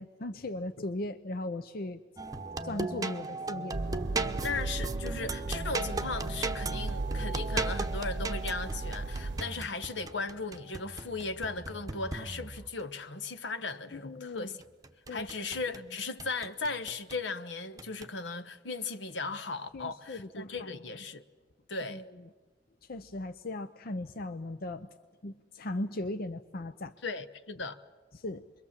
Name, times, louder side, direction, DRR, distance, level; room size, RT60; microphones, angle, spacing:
voice 1, 0.0-2.0 2.6-3.8 13.9-14.6 15.1-15.3 19.7-20.8 21.9-22.0 22.9-24.9 25.2-26.9 28.1-28.5, left 2 dB, 55° left, 0.7 m, -38 dB
sound 1, 2.2-12.8 14.6-15.8 16.2-17.2 17.8-18.1, right 3 dB, 20° right, 0.9 m, -37 dB
sound 2, 3.7-9.4, right 3 dB, 80° right, 0.8 m, -36 dB
voice 2, 4.4-14.6 15.1-21.2 21.7-22.0 27.0-27.8, left 3 dB, 80° left, 1.2 m, -37 dB
28.5 x 23.0 x 7.4 m
head